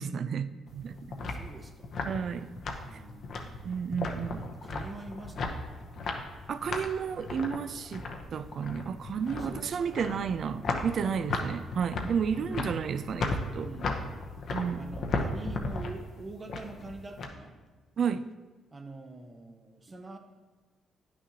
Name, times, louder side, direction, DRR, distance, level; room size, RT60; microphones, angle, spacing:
voice 1, 0.0-1.1 2.0-2.5 2.9-3.0 3.6-4.5 6.5-13.7 14.5-14.9 18.0-18.3, right 7 dB, 55° right, 0.3 m, -32 dB
sound 1, 0.7-17.3, left 3 dB, 60° left, 0.8 m, -36 dB
voice 2, 1.2-1.9 2.8-3.9 4.6-5.6 9.3-10.1 13.6-14.4 14.8-17.5 18.7-20.2, right 2 dB, 30° right, 0.8 m, -45 dB
9.4 x 6.1 x 2.8 m
cardioid pair, 90°, 0 cm